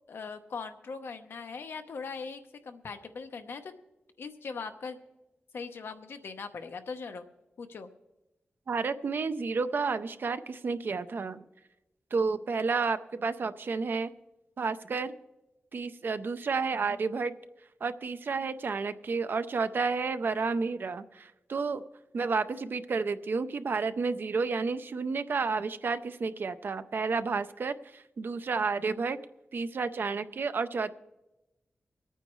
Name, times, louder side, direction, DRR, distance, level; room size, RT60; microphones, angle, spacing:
voice 1, 0.1-3.7 4.2-5.0 5.5-7.2 7.6-7.9, left 5 dB, 85° left, 7 dB, 0.8 m, -40 dB
voice 2, 8.7-11.4 12.1-14.1 14.6-15.2 15.7-17.3 17.8-21.8 22.1-29.2 29.5-30.9, right 4 dB, 65° right, 11 dB, 0.5 m, -31 dB
24.0 x 9.1 x 3.1 m, 1.0 s
wide cardioid pair, 95°, 4 cm